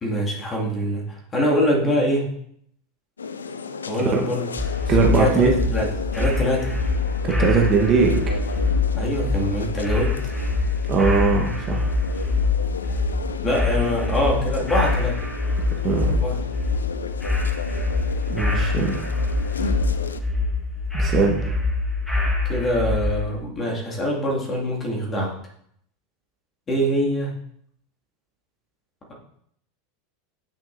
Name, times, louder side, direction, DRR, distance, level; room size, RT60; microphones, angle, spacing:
voice 1, 0.0-2.3 3.9-4.5 4.7-6.7 8.9-10.1 13.4-15.2 16.1-16.4 22.4-25.3 26.7-27.3, equal, 25° left, -1 dB, 2.1 m, -24 dB
sound 1, 3.2-20.2, left 5 dB, 80° left, 0.4 m, -34 dB
sound 2, 4.6-23.2, left 3 dB, 5° left, 2.0 m, -24 dB
voice 2, 4.9-5.5 7.2-8.2 10.9-11.8 15.8-16.1 18.3-19.0 20.9-21.4, right 5 dB, 35° right, 0 dB, 1.2 m, -20 dB
8.8 x 6.0 x 2.6 m, 0.69 s
figure-of-eight pair, 85°, 0 cm